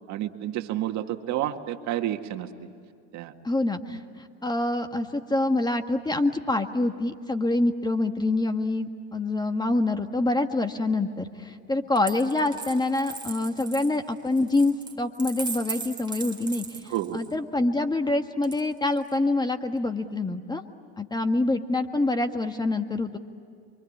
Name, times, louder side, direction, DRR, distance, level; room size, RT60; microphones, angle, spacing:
voice 1, 0.1-2.5 3.1-3.3 16.9-17.2, right 13 dB, 55° right, 6 dB, 1.9 m, -30 dB
voice 2, 3.4-20.6 21.0-23.2, left 2 dB, 10° left, 7 dB, 1.6 m, -26 dB
Coin (dropping), 12.0-17.3 18.4-19.1, right 5 dB, 15° right, 3.5 m, -38 dB
28.0 x 25.0 x 8.7 m, 2.4 s
supercardioid pair, 105°, 34 cm